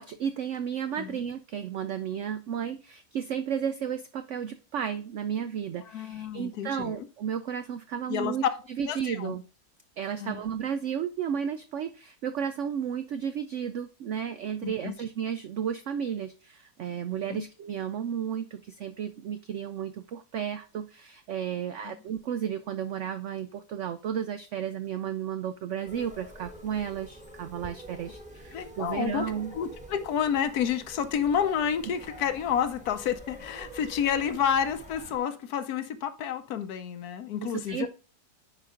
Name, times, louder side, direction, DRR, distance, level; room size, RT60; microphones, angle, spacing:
voice 1, 0.0-8.4 8.8-9.4 10.0-29.5 37.4-37.9, right 8 dB, 80° right, 10 dB, 0.6 m, -33 dB
voice 2, 5.8-7.1 8.1-8.5 8.9-9.4 10.2-10.4 14.6-14.9 17.3-17.5 21.8-22.0 28.5-29.3 29.5-37.9, left 8 dB, 70° left, 11 dB, 1.1 m, -30 dB
sound 1, 25.9-35.2, equal, 5° right, 1.1 m, -46 dB
9.8 x 4.2 x 3.7 m, 0.35 s
omnidirectional pair, 1.8 m